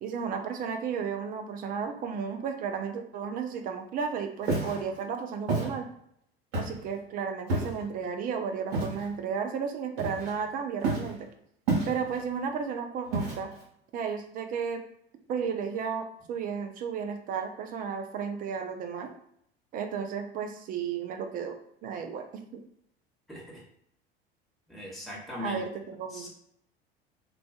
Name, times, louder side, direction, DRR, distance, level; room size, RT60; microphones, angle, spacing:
voice 1, 0.0-5.9 6.5-11.2 11.9-13.5 13.9-14.8 15.3-19.1 19.7-21.6 21.8-22.6 25.4-26.3, right 6 dB, 30° right, 6 dB, 0.4 m, -33 dB
Walk footsteps, 4.4-4.8 5.5-5.7 6.5-6.9 7.5-7.8 8.7-9.0 10.0-10.4 10.8-11.1 11.7-12.2 13.1-13.6, right 3 dB, 65° right, 1.0 m, -29 dB
voice 2, 24.7-25.6 26.1-26.3, left 1 dB, ahead, -5 dB, 1.0 m, -39 dB
2.4 x 2.3 x 2.3 m, 0.73 s
figure-of-eight pair, 70°, 30 cm